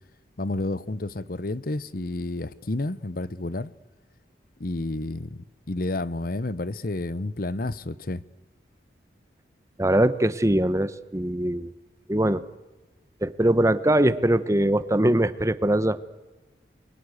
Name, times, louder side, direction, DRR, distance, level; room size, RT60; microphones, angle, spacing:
voice 1, 0.4-3.7 4.6-8.2, left 2 dB, 55° left, 0.9 m, -30 dB
voice 2, 9.8-11.7 12.1-12.4 13.2-16.0, right 1 dB, 15° right, 0.9 m, -22 dB
28.5 x 22.5 x 8.1 m
head